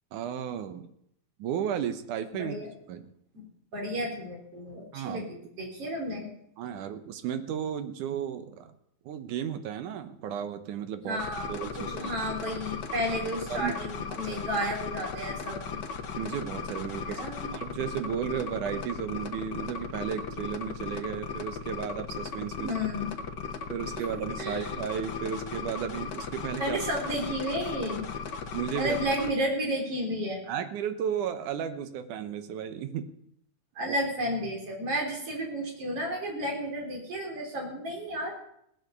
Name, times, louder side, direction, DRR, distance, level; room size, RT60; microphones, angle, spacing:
voice 1, 0.1-0.9 1.4-2.6 2.9-3.1 4.9-5.3 6.6-8.7 9.1-11.2 11.5-12.1 13.5-13.8 14.1-14.5 16.1-22.7 23.7-26.8 28.5-29.0 30.5-33.1 33.9-34.0, right 8 dB, 85° right, 10 dB, 2.5 m, -34 dB
voice 2, 2.3-2.7 3.3-3.5 3.7-6.3 11.0-15.8 17.0-17.5 22.6-23.1 24.0-24.7 26.6-28.1 28.8-30.4 33.8-38.4, equal, 50° right, 0 dB, 4.6 m, -32 dB
sound 1, 11.2-29.3, left 5 dB, 70° left, 1.0 m, -37 dB
18.0 x 8.4 x 7.0 m, 0.72 s
omnidirectional pair, 3.5 m